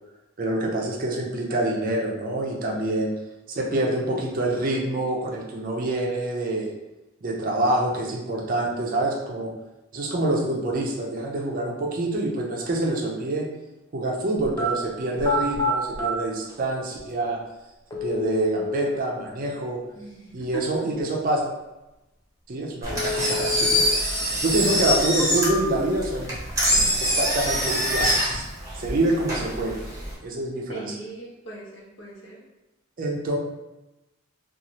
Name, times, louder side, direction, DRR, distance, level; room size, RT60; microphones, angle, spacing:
voice 1, 0.4-3.1 3.5-6.7 7.2-9.5 9.9-13.5 13.9-17.4 18.0-19.8 20.3-21.4 22.5-26.4 27.0-28.5 28.8-29.8 30.2-30.9 33.0-33.4, right 1 dB, 45° right, -1 dB, 0.5 m, -26 dB
sound 1, 14.4-14.7 15.2-16.1 17.1-17.2 17.9-18.9 22.9-23.9 24.3-24.4 25.0-25.9 26.3-27.0 27.3-27.9, left 2 dB, 15° left, 0.5 m, -29 dB
voice 2, 19.9-20.7 30.7-32.4, right 2 dB, 65° left, -4 dB, 0.9 m, -39 dB
Engine, 22.8-30.1, equal, 15° right, 0.8 m, -24 dB
2.7 x 2.3 x 2.9 m, 1.0 s
head